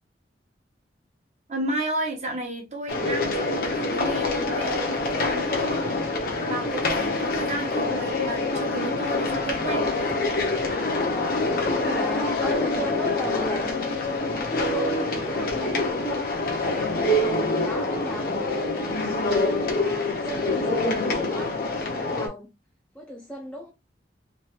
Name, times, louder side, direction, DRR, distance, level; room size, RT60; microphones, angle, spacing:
voice 1, 1.5-6.0 6.4-10.1, right 2 dB, 40° right, 1.0 m, -32 dB
sound 1, 2.9-22.3, left 2 dB, 55° left, 0.8 m, -26 dB
voice 2, 11.5-19.0 19.3-22.5 22.9-23.7, equal, 5° left, 0.5 m, -36 dB
3.2 x 2.5 x 2.8 m
head